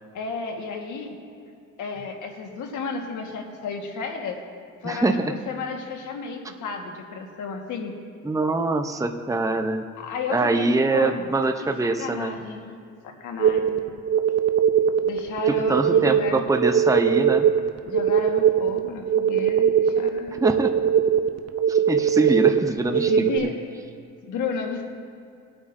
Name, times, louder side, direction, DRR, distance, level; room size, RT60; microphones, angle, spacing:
voice 1, 0.1-1.2 1.8-4.4 4.8-7.9 10.0-11.3 12.0-12.8 13.0-13.9 15.0-16.4 17.9-20.4 22.9-23.5 24.2-24.8, left 5 dB, 80° left, 2 dB, 1.7 m, -32 dB
voice 2, 4.8-5.4 8.2-9.8 10.3-12.3 15.5-17.5 20.3-20.7 21.7-23.5, right 3 dB, 10° right, 6 dB, 0.8 m, -24 dB
sound 1, 13.4-23.4, right 8 dB, 55° right, 0.8 m, -21 dB
21.0 x 8.9 x 2.7 m, 2.4 s
cardioid pair, 90°, 30 cm